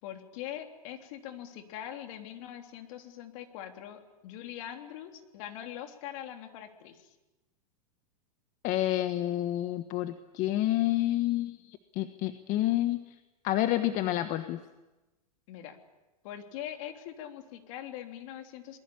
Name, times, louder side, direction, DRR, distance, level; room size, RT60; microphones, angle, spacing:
voice 1, 0.0-7.1 15.5-15.8 16.2-18.8, left 11 dB, 55° left, 5 dB, 3.5 m, -42 dB
voice 2, 8.6-13.0 13.4-14.6, left 14 dB, 40° left, 9 dB, 1.4 m, -29 dB
27.0 x 21.0 x 8.7 m, 1.1 s
hypercardioid pair, 125°, 20 cm